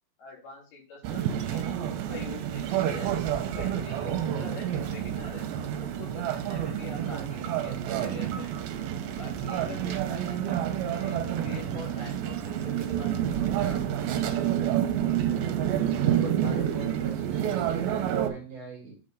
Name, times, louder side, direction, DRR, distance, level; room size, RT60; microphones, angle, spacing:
voice 1, 0.2-3.1 3.6-5.4 5.8-8.5 9.1-11.2 11.4-13.8 14.1-14.2, left 4 dB, 80° left, -3 dB, 4.4 m, -45 dB
sound 1, 1.0-18.3, right 10 dB, 80° right, 2.5 m, -29 dB
voice 2, 16.0-18.9, right 6 dB, 55° right, 0 dB, 2.1 m, -38 dB
7.9 x 4.4 x 3.7 m, 0.37 s
omnidirectional pair, 4.3 m